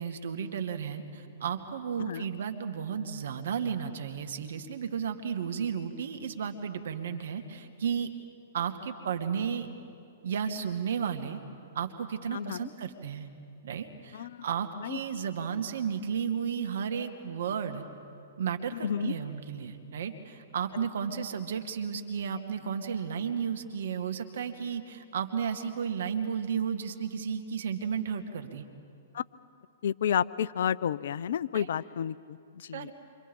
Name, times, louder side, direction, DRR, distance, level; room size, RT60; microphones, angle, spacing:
voice 1, 0.0-8.1 8.5-9.7 10.2-11.4 11.7-13.3 13.6-17.8 18.4-28.7 31.5-31.7 32.7-32.9, right 7 dB, 70° right, 7 dB, 2.0 m, -33 dB
voice 2, 12.3-12.7 14.1-14.4 14.8-15.0 18.7-19.1 29.1-29.2 29.8-32.9, left 9 dB, 65° left, 18 dB, 0.6 m, -31 dB
28.0 x 25.0 x 5.5 m, 2.5 s
hypercardioid pair, 120°, 0 cm